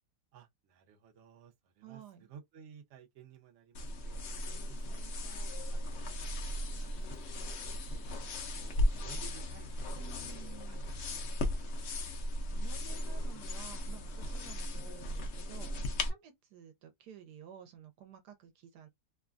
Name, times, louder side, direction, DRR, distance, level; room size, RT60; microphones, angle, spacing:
voice 1, 0.3-4.2 4.7-6.4 6.7-8.0 8.5-10.0 10.4-11.6 14.7-14.8, right 7 dB, 55° right, 0.9 m, -57 dB
voice 2, 1.8-2.3 9.9-10.8 12.5-15.7 16.0-18.9, right 9 dB, 75° right, 1.2 m, -53 dB
sound 1, 3.7-16.1, left 1 dB, 65° left, 0.7 m, -36 dB
sound 2, 6.2-9.8, left 5 dB, 40° left, 1.0 m, -63 dB
3.0 x 2.2 x 2.4 m
omnidirectional pair, 1.8 m